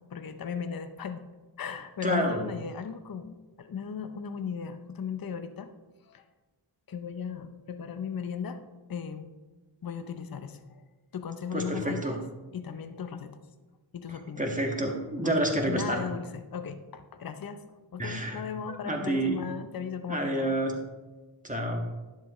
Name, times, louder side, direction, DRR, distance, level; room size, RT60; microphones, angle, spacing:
voice 1, 0.1-1.2 1.6-5.7 6.0-6.2 6.9-8.6 8.9-9.3 9.8-10.8 11.1-12.2 12.5-13.4 13.9-14.6 15.2-17.6 17.9-20.6, left 7 dB, 45° left, 9 dB, 0.7 m, -37 dB
voice 2, 2.0-2.4 11.5-12.1 14.1-16.0 18.0-19.4 20.1-20.7 21.4-21.9, right 1 dB, 15° right, 1 dB, 1.7 m, -29 dB
11.0 x 7.5 x 3.2 m, 1.2 s
cardioid pair, 60°, 50 cm